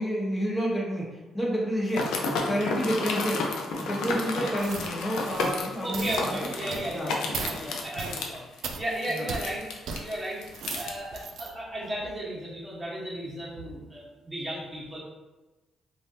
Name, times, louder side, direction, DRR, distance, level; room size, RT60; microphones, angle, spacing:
voice 1, 0.0-2.1 2.5-3.5 3.8-7.1 9.1-9.2, equal, 10° left, -5 dB, 1.1 m, -29 dB
sound 1, 1.9-10.9, left 3 dB, 85° left, 0.4 m, -32 dB
sound 2, 4.6-4.9 5.3-5.6 5.9-6.2 6.7-6.9 7.3-7.6 8.0-8.2 8.6-8.8 9.3-9.4 9.9-10.0 10.4-11.5 12.0-12.1, right 5 dB, 70° right, 0.3 m, -36 dB
voice 2, 5.8-9.6 10.0-10.4 10.8-15.0, right 1 dB, 15° right, -6 dB, 1.2 m, -35 dB
3.2 x 2.5 x 2.7 m, 1.1 s
cardioid pair, 90°, 0 cm